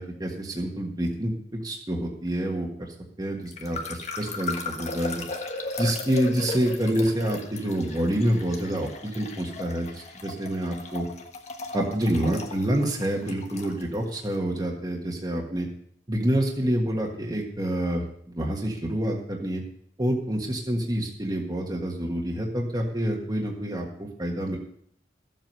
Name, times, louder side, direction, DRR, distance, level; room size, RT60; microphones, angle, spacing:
voice 1, 0.0-1.3 1.6-2.9 3.2-5.2 5.8-11.1 11.7-15.7 16.1-19.6 20.0-24.6, right 1 dB, 25° right, -1 dB, 1.5 m, -27 dB
sound 1, 3.5-14.3, left 3 dB, 40° left, 1.4 m, -37 dB
14.5 x 7.8 x 5.5 m, 0.66 s
head